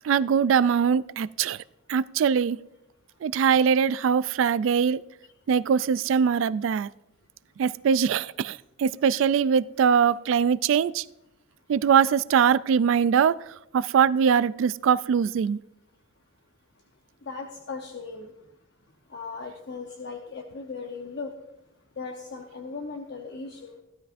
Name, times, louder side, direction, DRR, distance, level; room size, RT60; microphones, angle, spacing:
voice 1, 0.0-1.6 1.9-2.6 3.2-5.0 5.5-6.9 7.6-11.0 11.7-13.4 13.7-15.6, right 7 dB, 65° right, 18 dB, 0.3 m, -22 dB
voice 2, 17.3-18.3 19.1-21.3 22.0-23.8, left 4 dB, 55° left, 2 dB, 0.8 m, -37 dB
15.5 x 11.5 x 2.5 m, 0.89 s
head